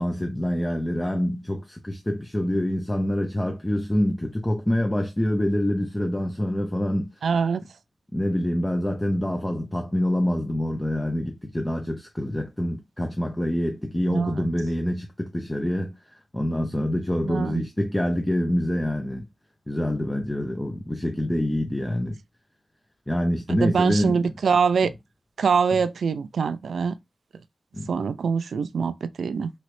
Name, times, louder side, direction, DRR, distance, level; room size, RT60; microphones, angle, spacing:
voice 1, 0.0-7.1 8.1-16.0 16.3-19.3 19.7-22.2 23.1-24.3 27.7-27.9, left 1 dB, 10° left, 0.4 m, -26 dB
voice 2, 7.2-7.6 14.1-14.5 17.3-17.6 23.5-24.9 25.4-27.0 27.9-29.5, right 6 dB, 85° right, 0.3 m, -24 dB
3.0 x 2.8 x 3.0 m
wide cardioid pair, 160°, 0 cm